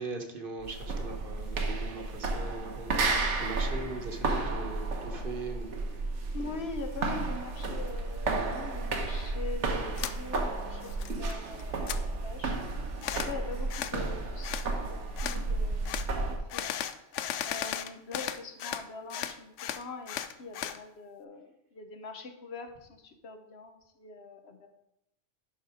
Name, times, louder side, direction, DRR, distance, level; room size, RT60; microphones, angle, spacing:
voice 1, 0.0-5.8, right 3 dB, 50° right, 4 dB, 1.3 m, -40 dB
sound 1, 0.6-16.4, right 3 dB, 75° right, 1.4 m, -32 dB
voice 2, 6.3-11.9 12.2-12.6 13.1-16.0 16.3-16.7 17.4-24.7, left 3 dB, 60° left, 6 dB, 1.1 m, -43 dB
sound 2, 10.0-10.2 10.6-11.3 11.6-12.0 13.0-13.3 13.7-14.0 14.4-14.7 15.2-15.4 15.9-16.1 16.5-18.8 19.1-20.8, left 10 dB, 80° left, 0.9 m, -35 dB
11.5 x 4.2 x 4.9 m, 0.83 s
omnidirectional pair, 1.2 m